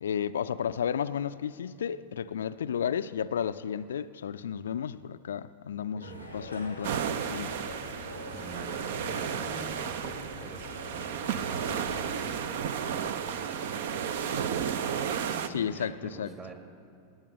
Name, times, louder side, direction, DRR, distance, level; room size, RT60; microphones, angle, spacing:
voice 1, 0.0-6.1 6.3-6.9 7.3-7.5 15.5-16.3, left 8 dB, 65° left, 0.3 m, -32 dB
voice 2, 5.9-6.3 8.3-10.8 11.2-14.2 14.6-16.5, right 4 dB, 25° right, 1.8 m, -46 dB
sound 1, 6.0-12.3, left 1 dB, 85° right, 1.7 m, -43 dB
sound 2, 6.8-15.5, right 8 dB, 55° right, 0.6 m, -33 dB
19.0 x 8.7 x 6.7 m
figure-of-eight pair, 90°, 0 cm